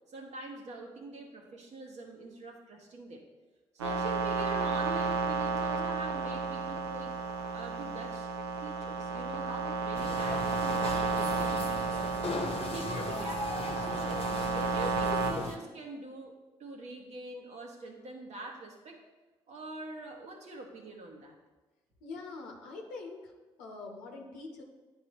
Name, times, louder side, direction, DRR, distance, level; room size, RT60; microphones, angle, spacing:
voice 1, 0.1-3.3 3.7-7.2 7.5-8.3 8.6-14.3 14.5-19.0 19.5-21.4, right 2 dB, 60° right, 1 dB, 1.3 m, -44 dB
sound 1, 3.8-15.3, right 4 dB, 90° right, 0.5 m, -32 dB
sound 2, 9.9-15.6, left 3 dB, 45° left, 1.0 m, -38 dB
voice 2, 22.0-23.3 23.6-24.6, left 3 dB, 80° left, 0 dB, 0.8 m, -44 dB
11.0 x 3.9 x 2.9 m, 1.2 s
hypercardioid pair, 40°, 13 cm